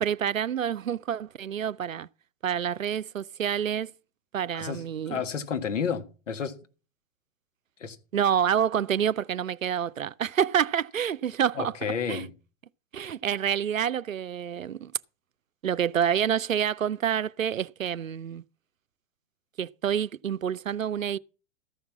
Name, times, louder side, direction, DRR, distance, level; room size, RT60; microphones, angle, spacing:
voice 1, 0.0-2.1 2.4-3.9 4.3-5.2 8.1-11.7 12.1-12.2 12.9-14.9 15.6-18.4 19.6-21.2, right 8 dB, 85° right, 0.5 m, -28 dB
voice 2, 4.5-6.6 7.8-8.0 11.5-12.3, left 6 dB, 70° left, 1.7 m, -31 dB
14.0 x 5.8 x 7.2 m
figure-of-eight pair, 105°, 39 cm